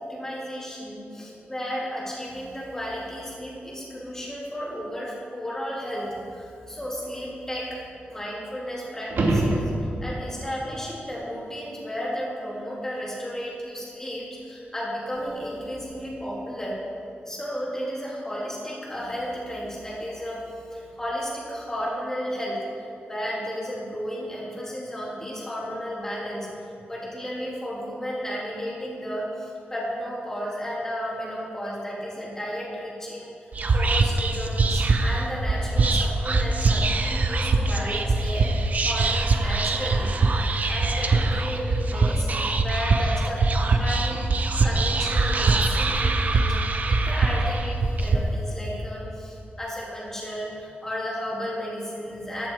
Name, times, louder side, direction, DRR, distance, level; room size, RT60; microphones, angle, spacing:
voice 1, 0.0-7.8 8.1-9.7 10.0-16.8 17.3-22.6 23.1-26.5 26.9-40.1 40.7-46.6 46.8-52.5, equal, 15° left, -6 dB, 2.9 m, -33 dB
sound 1, 9.0-10.3 15.2-15.3, right 2 dB, 65° right, 1.9 m, -24 dB
Whispering, 33.5-48.2, right 3 dB, 40° right, 0.7 m, -23 dB
14.5 x 11.0 x 4.7 m, 2.6 s
wide cardioid pair, 180°, 4 cm